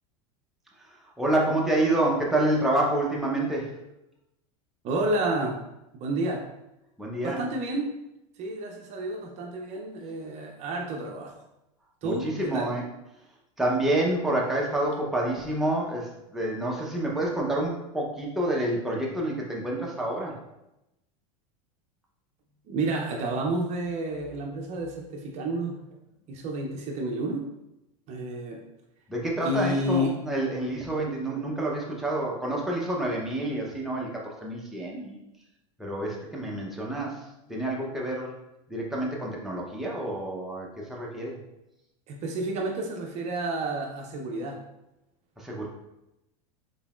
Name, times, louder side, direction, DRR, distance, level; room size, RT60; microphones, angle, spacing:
voice 1, 1.2-3.7 7.0-7.4 12.0-12.8 13.6-20.3 29.1-35.2 35.8-37.2 37.5-38.3 38.7-41.3 45.4-45.7, right 1 dB, ahead, -3 dB, 0.8 m, -28 dB
voice 2, 4.8-5.5 5.9-6.4 7.2-7.9 8.4-11.3 12.0-12.7 22.7-25.8 26.3-27.4 28.1-28.6 29.4-30.1 42.1-44.6, right 1 dB, 40° right, 1 dB, 0.6 m, -30 dB
3.9 x 3.8 x 2.4 m, 0.91 s
supercardioid pair, 125°, 18 cm